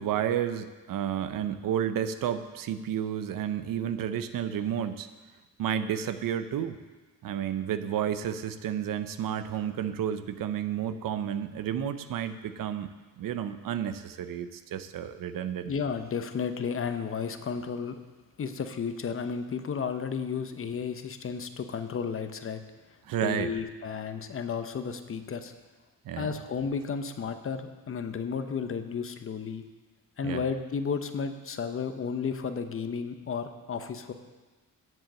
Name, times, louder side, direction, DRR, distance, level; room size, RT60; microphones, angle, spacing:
voice 1, 0.0-5.1 5.6-6.8 7.2-12.9 13.2-15.7 23.1-23.5 26.0-26.3 30.2-30.4, right 9 dB, 75° right, 11 dB, 0.7 m, -31 dB
voice 2, 15.7-18.0 18.4-22.6 22.9-25.5 26.2-29.6 30.2-34.1, left 6 dB, 40° left, 8 dB, 0.8 m, -33 dB
7.8 x 7.6 x 7.5 m, 1.3 s
cardioid pair, 110°, 34 cm